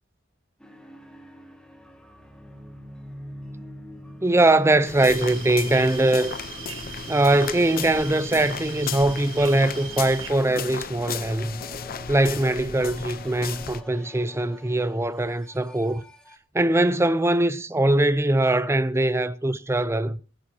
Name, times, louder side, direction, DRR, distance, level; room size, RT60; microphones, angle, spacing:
sound 1, 0.6-16.4, equal, 5° left, 2.0 m, -46 dB
voice 1, 4.2-6.4 7.1-11.6 12.1-16.0 16.5-20.2, right 1 dB, 15° right, 0.6 m, -22 dB
sound 2, 4.8-13.8, left 6 dB, 50° left, 0.8 m, -35 dB
sound 3, 5.0-10.3, right 10 dB, 80° right, 1.5 m, -40 dB
26.0 x 11.0 x 2.9 m
head